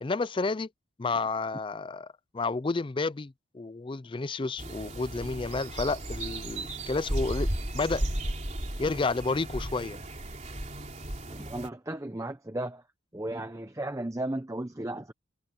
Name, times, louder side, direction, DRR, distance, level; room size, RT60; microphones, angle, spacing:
voice 1, 0.0-0.7 1.0-2.1 2.3-8.0 8.8-10.0, left 3 dB, 25° left, 0.4 m, -31 dB
sound 1, 4.6-11.7, right 1 dB, 35° right, 3.7 m, -35 dB
voice 2, 11.3-12.8 13.1-15.1, right 1 dB, 15° right, 0.7 m, -35 dB
head